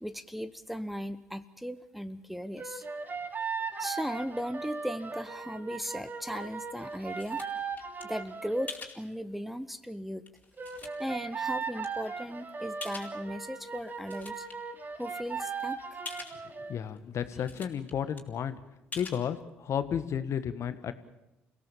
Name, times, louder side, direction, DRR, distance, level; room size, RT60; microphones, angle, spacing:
voice 1, 0.0-2.8 3.8-7.4 8.0-10.2 11.0-14.5 15.0-16.0 17.4-17.5, equal, ahead, 15 dB, 1.2 m, -37 dB
sound 1, 2.6-8.8 10.6-16.8, right 5 dB, 30° right, 2.5 m, -38 dB
sound 2, 6.5-8.0 8.7-9.0 9.7-9.8 10.3-11.2 11.8-11.9 12.8-13.4 13.8-14.5 14.9-15.0 15.2-15.3 16.0-16.4 17.0-17.1 17.2-17.9 18.2-18.3 18.9-19.2, left 4 dB, 25° left, 4.5 m, -44 dB
voice 2, 16.7-18.6 18.9-20.9, left 8 dB, 50° left, 11 dB, 1.8 m, -32 dB
29.0 x 17.5 x 7.4 m, 0.95 s
figure-of-eight pair, 50°, 6 cm